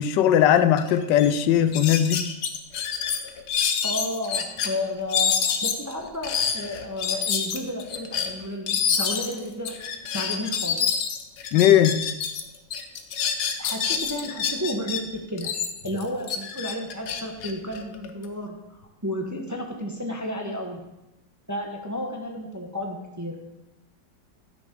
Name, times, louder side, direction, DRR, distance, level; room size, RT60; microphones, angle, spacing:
voice 1, 0.0-2.3 11.5-12.1, left 10 dB, 85° left, 1.3 m, -19 dB
sound 1, 0.8-0.9 1.2-1.3 1.7-4.7 5.1-12.4 12.7-15.0 15.4-18.3, left 7 dB, 65° left, 1.4 m, -27 dB
voice 2, 3.8-9.7 10.1-10.9 13.6-15.5 15.8-20.9 21.5-23.4, left 1 dB, 15° right, 0.9 m, -32 dB
11.5 x 6.3 x 5.2 m
omnidirectional pair, 1.9 m